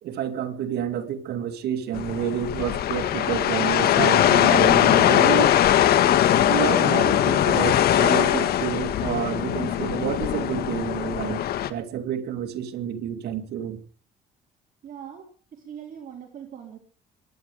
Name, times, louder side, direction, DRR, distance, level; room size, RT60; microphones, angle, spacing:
voice 1, 0.0-5.5 6.5-11.4 11.7-13.8, right 9 dB, 70° right, 2.6 m, -29 dB
sound 1, 1.9-11.7, left 11 dB, 65° left, 1.8 m, -21 dB
voice 2, 14.8-16.8, right 8 dB, 55° right, 3.6 m, -41 dB
23.5 x 10.5 x 5.1 m
cardioid pair, 110°, 17 cm